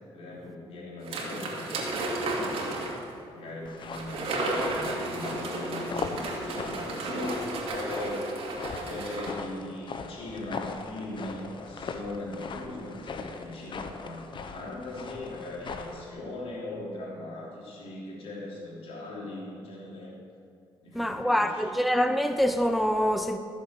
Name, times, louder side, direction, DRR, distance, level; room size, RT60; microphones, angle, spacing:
voice 1, 0.1-2.8 3.3-20.1 20.8-21.7, left 2 dB, 70° left, 3.5 m, -39 dB
sound 1, 1.0-3.1 3.9-9.3, right 2 dB, 70° right, 2.4 m, -33 dB
sound 2, 3.6-16.1, left 5 dB, 55° left, 0.9 m, -40 dB
voice 2, 20.9-23.4, equal, ahead, 0.6 m, -25 dB
14.5 x 7.3 x 6.1 m
cardioid pair, 80°, 10 cm